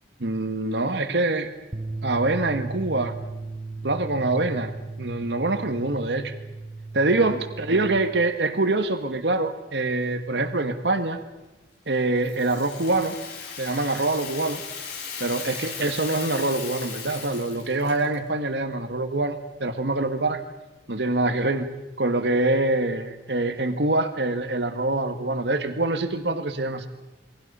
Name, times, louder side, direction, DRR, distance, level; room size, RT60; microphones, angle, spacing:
voice 1, 0.2-1.5 2.0-3.1 3.8-6.3 6.9-11.2 11.9-13.2 13.6-14.6 15.2-20.4 20.9-21.7 22.0-26.9, right 2 dB, 75° right, 8 dB, 1.5 m, -25 dB
sound 1, 1.7-8.0, right 3 dB, 20° right, 0.9 m, -36 dB
Rattle (instrument), 12.2-18.2, left 6 dB, 65° left, 4.6 m, -37 dB
28.0 x 22.5 x 5.5 m, 1.1 s
head